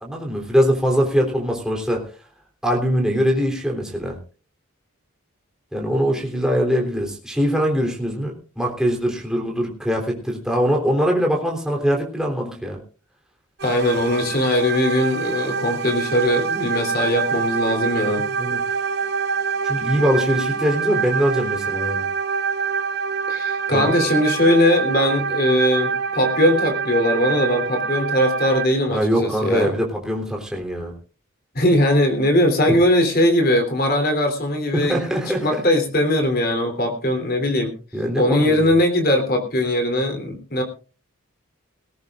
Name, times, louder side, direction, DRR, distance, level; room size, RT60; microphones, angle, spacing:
voice 1, 0.0-2.0 2.6-4.2 5.7-12.8 18.4-18.6 19.6-22.1 23.7-24.1 28.9-30.9 32.7-32.8 34.7-35.6 37.9-38.7, equal, 5° right, 0 dB, 3.5 m, -22 dB
voice 2, 13.6-18.3 23.3-29.7 31.5-37.7 38.2-40.6, left 1 dB, 45° left, 5 dB, 3.4 m, -20 dB
sound 1, 13.6-28.7, right 6 dB, 50° right, 0.9 m, -25 dB
19.0 x 17.5 x 2.5 m, 0.35 s
head